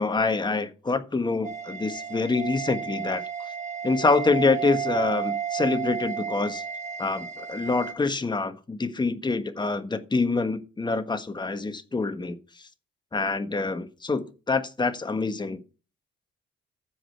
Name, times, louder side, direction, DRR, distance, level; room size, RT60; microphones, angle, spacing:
voice 1, 0.0-3.2 3.8-6.6 7.0-12.4 13.1-15.6, left 3 dB, 20° left, 9 dB, 1.4 m, -26 dB
sound 1, 1.4-7.9, right 7 dB, 35° right, 1.6 m, -32 dB
14.5 x 5.1 x 4.7 m, 0.34 s
cardioid pair, 90°, 20 cm